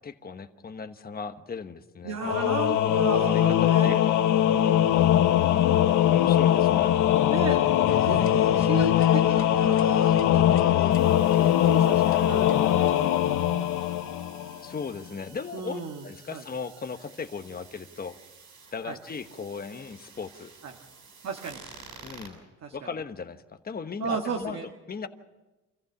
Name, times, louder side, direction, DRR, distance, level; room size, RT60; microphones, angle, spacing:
voice 1, 0.0-2.4 2.9-4.9 6.1-7.0 8.1-8.3 14.6-18.2 18.7-20.5 22.0-22.4 22.7-24.6 24.9-25.1, left 5 dB, 30° left, 7 dB, 1.2 m, -37 dB
voice 2, 2.0-4.0 5.9-6.0 6.7-6.8 7.3-10.7 11.4-13.1 15.5-16.4 18.8-19.0 20.6-20.7 21.2-21.6 22.6-22.8 24.0-24.7, right 5 dB, 55° right, 3 dB, 1.7 m, -34 dB
Singing / Musical instrument, 2.2-14.7, left 11 dB, 80° left, 1.0 m, -21 dB
sound 1, 7.9-12.9, left 9 dB, 45° left, 0.7 m, -36 dB
sound 2, 10.9-22.3, right 5 dB, 75° right, 6.7 m, -51 dB
26.0 x 15.0 x 7.2 m, 1.1 s
cardioid pair, 90°, 30 cm